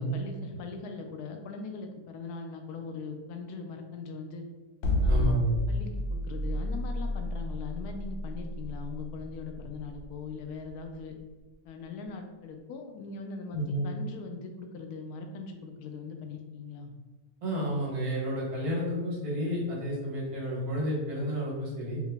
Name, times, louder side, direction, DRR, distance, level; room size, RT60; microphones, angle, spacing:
voice 1, 0.0-4.4 5.0-5.4 5.7-11.2 11.6-16.9, left 4 dB, 85° left, 4 dB, 1.1 m, -40 dB
sound 1, 4.8-11.0, left 1 dB, 60° left, 0.9 m, -30 dB
voice 2, 5.1-5.7 13.5-13.9 17.4-22.0, equal, 75° right, -4 dB, 1.5 m, -31 dB
4.7 x 2.2 x 3.3 m, 1.2 s
omnidirectional pair, 1.6 m